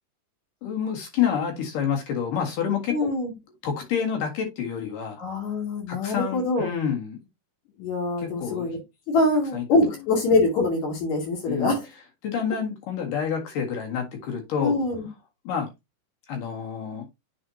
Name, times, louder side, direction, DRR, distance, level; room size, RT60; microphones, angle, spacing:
voice 1, 0.6-3.1 3.6-5.2 5.9-7.2 8.2-8.7 9.5-9.6 11.5-11.7 12.2-14.8 15.5-15.7 16.3-17.1, left 7 dB, 90° left, 3.4 m, -28 dB
voice 2, 2.9-3.3 5.2-6.7 7.8-8.8 9.1-11.9 14.6-15.1, left 2 dB, 65° left, 3.7 m, -24 dB
9.8 x 4.4 x 2.7 m
omnidirectional pair, 3.7 m